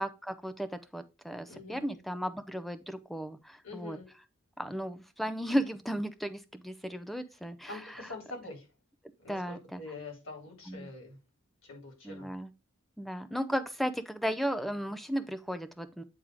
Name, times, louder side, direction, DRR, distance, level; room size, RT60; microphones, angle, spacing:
voice 1, 0.0-4.0 4.6-7.8 9.3-9.8 10.7-10.9 12.0-12.5 13.0-16.0, equal, ahead, 0.6 m, -35 dB
voice 2, 1.5-2.0 3.6-4.1 7.7-8.7 9.2-11.2 11.6-12.3, left 2 dB, 65° left, 3.8 m, -45 dB
8.9 x 3.6 x 4.7 m
head